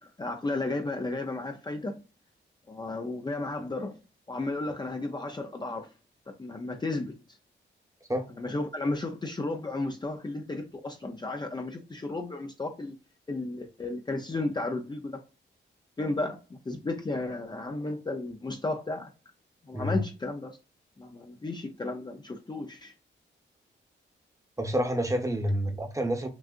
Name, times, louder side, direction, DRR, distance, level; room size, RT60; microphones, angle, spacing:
voice 1, 0.2-2.0 2.7-4.0 4.3-5.9 6.3-7.1 8.3-12.9 13.3-15.1 16.0-19.1 19.7-20.6 21.0-22.9, left 2 dB, 20° left, 0.6 m, -33 dB
voice 2, 24.6-26.3, equal, 15° right, 1.0 m, -28 dB
6.1 x 2.4 x 2.5 m
cardioid pair, 100°, 20 cm